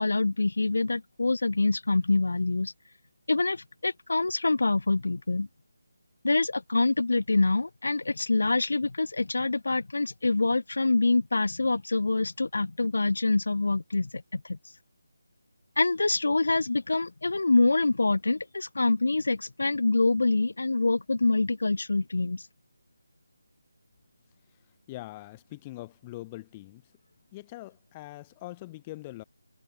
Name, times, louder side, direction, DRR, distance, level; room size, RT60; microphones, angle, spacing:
voice 1, 0.0-2.7 3.3-5.5 6.2-14.6 15.8-22.4, left 3 dB, 70° left, 0.7 m, -25 dB
voice 2, 24.9-26.8 27.3-29.2, left 18 dB, 15° left, 1.0 m, -42 dB
figure-of-eight pair, 170°, 0 cm